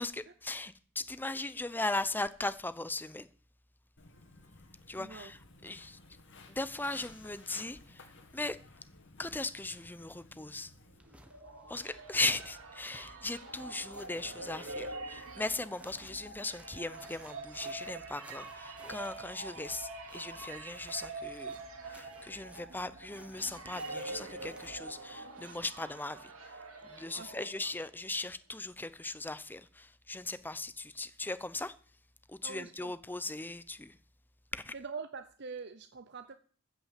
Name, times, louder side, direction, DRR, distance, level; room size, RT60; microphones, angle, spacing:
voice 1, 0.4-3.3 4.9-5.4 5.6-6.0 6.5-8.0 8.3-8.6 9.2-10.7 11.7-21.6 21.8-31.7 32.3-34.0 34.5-34.7, left 2 dB, 10° left, 0.6 m, -38 dB
Walk footsteps, 4.0-11.0, left 3 dB, 60° left, 2.1 m, -56 dB
voice 2, 4.9-5.3 11.7-11.8 27.1-27.7 32.4-33.0 34.7-36.4, right 5 dB, 55° right, 0.8 m, -45 dB
sound 1, 11.0-24.9, equal, 5° right, 1.3 m, -57 dB
sound 2, 11.0-28.0, right 3 dB, 85° right, 2.4 m, -45 dB
15.0 x 6.1 x 7.5 m
head